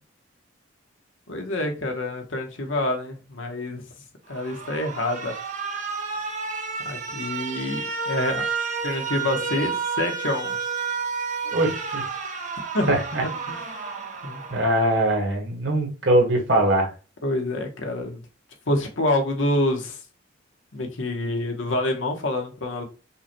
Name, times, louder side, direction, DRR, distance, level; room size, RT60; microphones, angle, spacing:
voice 1, 1.3-3.8 4.3-5.4 6.8-8.5 8.8-10.6 12.7-12.9 13.2-13.9 14.2-14.4 17.2-18.2 18.7-20.0 20.7-22.9, left 1 dB, 70° left, 1.0 m, -27 dB
Alarm, 4.3-15.3, right 5 dB, 35° right, 0.7 m, -31 dB
voice 2, 11.4-12.0 12.9-13.2 14.5-16.9, right 1 dB, 60° right, 1.4 m, -22 dB
5.5 x 2.2 x 2.8 m
head